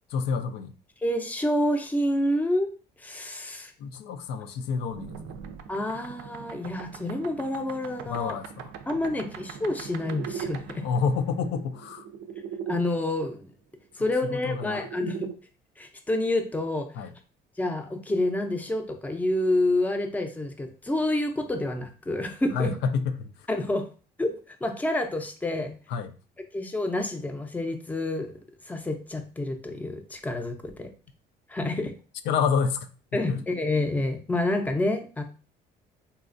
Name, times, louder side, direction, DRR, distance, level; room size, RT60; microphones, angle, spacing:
voice 1, 0.1-0.7 3.8-5.3 8.1-8.7 9.1-9.2 10.8-12.1 14.0-14.1 14.3-14.9 16.9-17.1 22.5-23.5 25.9-26.2 32.2-33.4, left 5 dB, 80° left, 0.4 m, -29 dB
voice 2, 1.0-2.7 3.0-3.7 5.7-8.4 8.9-10.8 12.7-13.5 14.0-15.3 15.8-16.9 17.6-22.7 23.5-23.9 24.2-25.7 26.5-28.4 28.7-30.9 31.5-31.9 33.1-35.2, left 1 dB, 10° left, 0.5 m, -28 dB
sound 1, 4.9-12.8 14.1-15.3, right 7 dB, 90° right, 0.4 m, -40 dB
4.1 x 2.3 x 2.5 m
cardioid pair, 110°, 17 cm